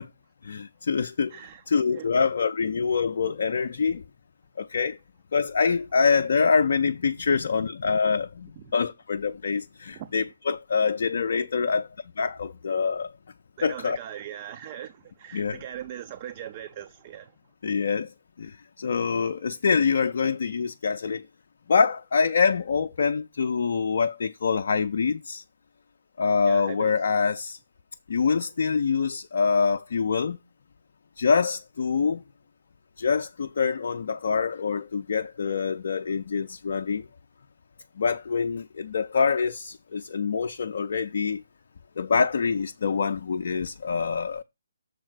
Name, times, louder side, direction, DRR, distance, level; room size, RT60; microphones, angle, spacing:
voice 1, 0.4-1.3 1.7-4.0 4.6-5.0 5.3-11.9 12.2-13.1 13.6-14.0 15.3-15.6 17.6-18.1 18.4-21.2 21.7-25.4 26.2-27.6 28.1-30.4 31.2-32.2 33.0-37.0 38.0-41.4 42.0-44.4, left 5 dB, 50° left, 0.4 m, -25 dB
voice 2, 1.3-1.6 1.9-2.1 8.6-8.7 9.9-10.2 13.6-17.3 26.5-26.9, right 10 dB, 30° right, 0.4 m, -40 dB
6.6 x 3.9 x 6.2 m
figure-of-eight pair, 140°, 0 cm